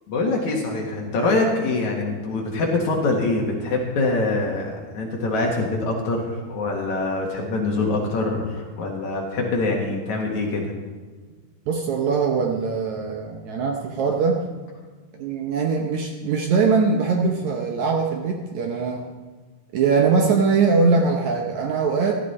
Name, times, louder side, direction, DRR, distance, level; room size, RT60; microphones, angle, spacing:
voice 1, 0.1-10.6, left 2 dB, 55° left, 0 dB, 2.5 m, -24 dB
voice 2, 11.7-14.4 15.1-19.0 19.7-22.2, right 4 dB, 75° right, 2 dB, 1.7 m, -21 dB
15.0 x 13.0 x 4.2 m, 1.4 s
omnidirectional pair, 4.6 m